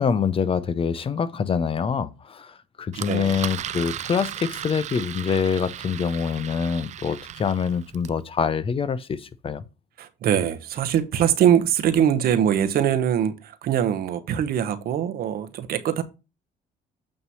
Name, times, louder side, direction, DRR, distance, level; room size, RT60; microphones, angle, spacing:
voice 1, 0.0-9.6, left 6 dB, 35° left, 0.6 m, -25 dB
Engine, 2.9-8.2, right 10 dB, 45° right, 0.4 m, -36 dB
voice 2, 3.0-3.4 10.0-16.0, right 9 dB, 65° right, 1.0 m, -22 dB
8.7 x 3.1 x 5.5 m
cardioid pair, 110°, 17 cm